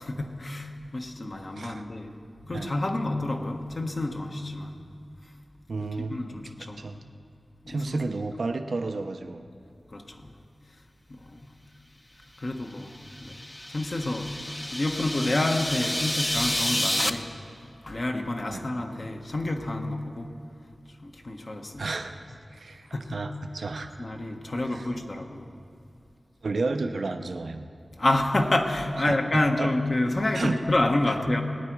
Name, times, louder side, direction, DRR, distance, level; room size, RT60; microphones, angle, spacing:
voice 1, 0.0-2.2 2.4-4.8 5.8-6.9 7.6-8.0 9.9-10.3 11.1-11.6 12.4-17.3 17.8-20.3 21.0-21.9 22.9-23.2 24.0-25.5 28.0-31.4, left 2 dB, 55° left, 3 dB, 1.2 m, -29 dB
voice 2, 5.7-6.4 6.8-7.0 7.7-9.4 18.5-18.7 21.8-22.1 22.5-23.9 24.7-24.9 26.4-27.7 29.1-29.7 30.3-30.6, right 3 dB, 80° right, 7 dB, 0.6 m, -32 dB
sound 1, 12.9-17.1, left 1 dB, 20° left, 0.7 m, -30 dB
20.5 x 9.2 x 4.7 m, 2.4 s
cardioid pair, 45°, 0 cm